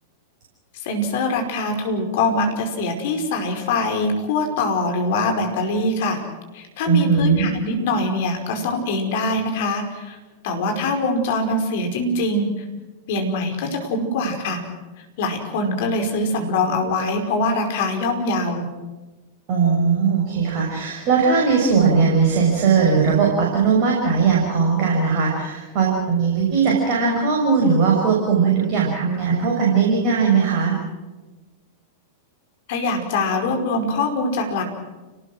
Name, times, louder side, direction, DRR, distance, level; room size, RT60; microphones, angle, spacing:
voice 1, 0.8-6.2 6.5-10.2 10.4-12.6 13.1-14.6 15.2-18.7 32.7-34.6, left 2 dB, 55° left, 5 dB, 5.1 m, -23 dB
voice 2, 6.9-7.4 19.5-30.8, right 5 dB, 45° right, -2 dB, 6.3 m, -19 dB
30.0 x 19.0 x 6.4 m, 1.2 s
figure-of-eight pair, 90°, 0 cm